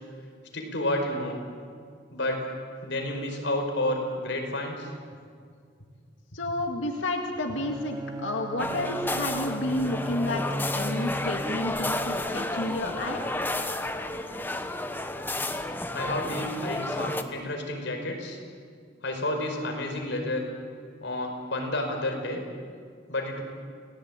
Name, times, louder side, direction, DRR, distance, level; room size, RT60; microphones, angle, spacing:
voice 1, 0.5-1.4 2.1-2.4 2.8-4.9 15.9-18.4 19.0-20.4 21.0-22.4 23.1-23.4, left 1 dB, 65° left, 2 dB, 5.1 m, -30 dB
voice 2, 6.3-10.4 10.7-13.2, left 1 dB, 85° left, 3 dB, 2.1 m, -30 dB
Bowed string instrument, 7.5-12.3, right 1 dB, 20° right, 1.3 m, -36 dB
sound 1, 8.6-17.2, left 1 dB, 10° left, 1.2 m, -31 dB
29.5 x 18.0 x 8.9 m, 2.1 s
head